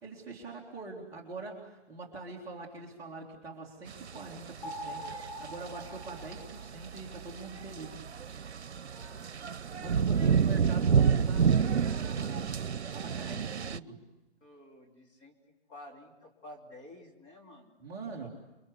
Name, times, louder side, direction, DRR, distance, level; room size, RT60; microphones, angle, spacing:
voice 1, 0.0-8.0 9.8-12.4 12.9-14.0 17.8-18.3, right 3 dB, 10° right, -4 dB, 2.7 m, -44 dB
sound 1, 3.9-13.8, right 6 dB, 85° right, 0.9 m, -29 dB
sound 2, 4.6-7.1, equal, 45° left, 4.3 m, -43 dB
voice 2, 8.8-9.3 12.0-12.3 14.4-15.3 15.7-17.7 18.0-18.3, left 1 dB, 15° left, -1 dB, 3.1 m, -52 dB
29.0 x 24.0 x 8.2 m, 1.0 s
hypercardioid pair, 160°, 33 cm